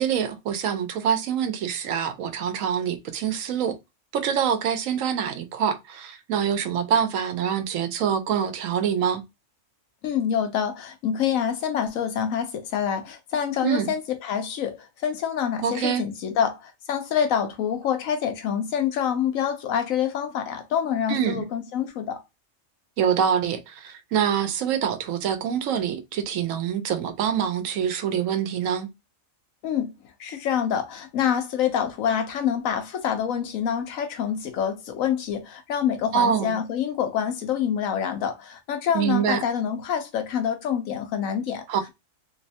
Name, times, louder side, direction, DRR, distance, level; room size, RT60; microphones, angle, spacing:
voice 1, 0.0-3.8 4.1-9.2 13.6-13.9 15.6-16.0 21.1-21.4 23.0-28.9 36.1-36.6 38.9-39.4 41.7-41.9, right 8 dB, 80° right, 1.0 m, -25 dB
voice 2, 10.0-22.2 29.6-29.9 30.2-41.6, left 8 dB, 85° left, 1.1 m, -26 dB
3.1 x 3.0 x 2.7 m
omnidirectional pair, 1.4 m